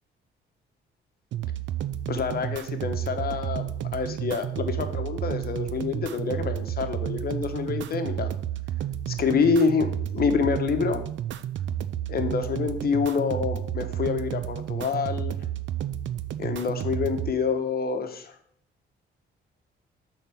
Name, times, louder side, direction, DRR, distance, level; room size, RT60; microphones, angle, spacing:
sound 1, 1.3-17.3, right 10 dB, 70° right, 0.5 m, -31 dB
voice 1, 2.1-8.3 9.1-11.0 12.1-15.4 16.4-18.3, left 5 dB, 50° left, 8 dB, 1.1 m, -27 dB
6.7 x 4.0 x 6.1 m, 0.68 s
cardioid pair, 90°, 20 cm